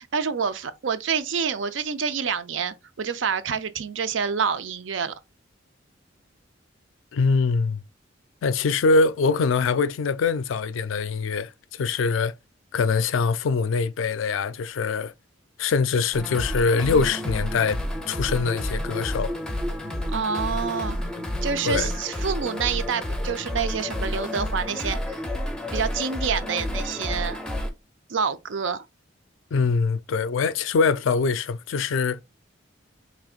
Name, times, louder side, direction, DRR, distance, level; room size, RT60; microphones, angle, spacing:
voice 1, 0.0-5.1 20.1-21.0 21.4-25.0 25.7-27.4 28.1-28.8, right 6 dB, 75° right, 0.5 m, -27 dB
voice 2, 7.1-7.8 8.4-12.3 12.7-15.1 15.6-17.8 18.1-19.3 21.6-21.9 29.5-32.2, left 4 dB, 85° left, 0.4 m, -23 dB
sound 1, 16.1-27.7, left 1 dB, 5° left, 0.6 m, -30 dB
5.0 x 3.3 x 2.4 m
head